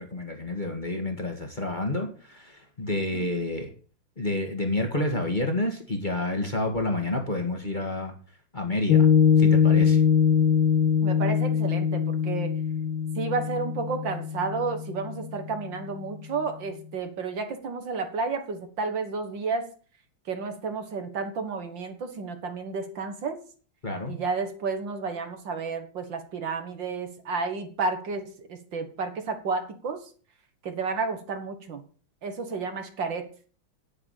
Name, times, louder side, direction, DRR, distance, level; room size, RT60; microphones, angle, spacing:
voice 1, 0.0-3.7 4.2-8.1 8.5-9.1 9.4-10.0 23.8-24.2, left 2 dB, 25° left, 4 dB, 1.9 m, -29 dB
Piano, 8.9-15.6, left 7 dB, 75° left, 1.7 m, -22 dB
voice 2, 11.0-12.5 13.2-19.7 20.3-23.4 24.1-30.0 30.6-31.8 32.2-33.3, right 4 dB, 65° right, 6 dB, 2.3 m, -31 dB
9.7 x 8.4 x 6.6 m, 0.40 s
omnidirectional pair, 2.2 m